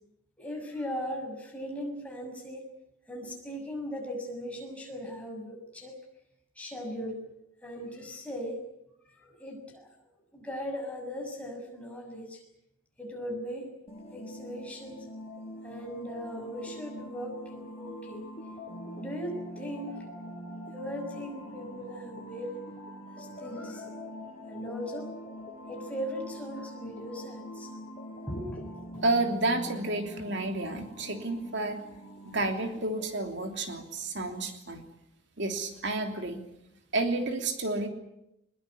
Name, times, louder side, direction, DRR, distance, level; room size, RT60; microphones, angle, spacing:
voice 1, 0.4-2.7 3.1-6.0 6.5-7.2 7.6-8.6 9.1-9.9 10.3-12.4 13.0-13.7 14.1-15.1 15.6-18.2 19.0-20.1 20.7-22.6 23.1-23.9 24.5-25.1 25.7-27.7 28.3-29.0, equal, 5° left, 0 dB, 6.5 m, -38 dB
sound 1, 13.9-33.1, equal, 30° left, 6.3 m, -43 dB
voice 2, 29.0-31.8 32.2-34.8 35.4-36.4 36.9-37.9, right 2 dB, 55° right, 5 dB, 3.0 m, -30 dB
22.5 x 21.5 x 9.7 m, 0.83 s
head